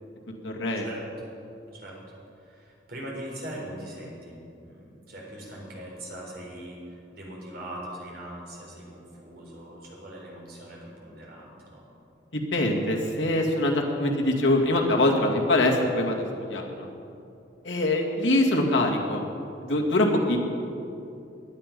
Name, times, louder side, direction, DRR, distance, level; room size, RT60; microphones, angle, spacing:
voice 1, 0.4-0.8 12.3-16.9 17.6-19.2 19.6-20.4, left 1 dB, 75° left, 0 dB, 2.1 m, -24 dB
voice 2, 2.3-11.9, right 1 dB, 55° right, -3 dB, 4.1 m, -41 dB
18.0 x 11.0 x 5.3 m, 2.7 s
head